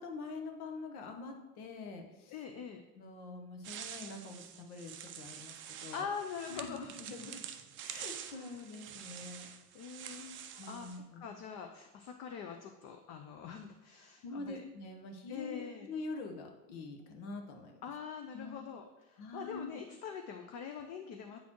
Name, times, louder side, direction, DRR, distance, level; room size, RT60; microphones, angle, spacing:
voice 1, 0.0-2.4 2.9-6.1 6.5-7.4 7.8-9.5 10.6-11.3 14.2-17.8 18.3-18.6 19.2-19.8, left 3 dB, 65° left, 4 dB, 1.2 m, -45 dB
voice 2, 2.3-2.8 5.9-6.9 8.3-8.5 9.7-14.6 15.3-15.9 17.8-21.4, left 6 dB, 35° left, 5 dB, 0.5 m, -44 dB
sound 1, 3.6-11.0, right 9 dB, 30° right, 0.4 m, -47 dB
8.3 x 4.1 x 3.0 m, 1.1 s
hypercardioid pair, 100°, 46 cm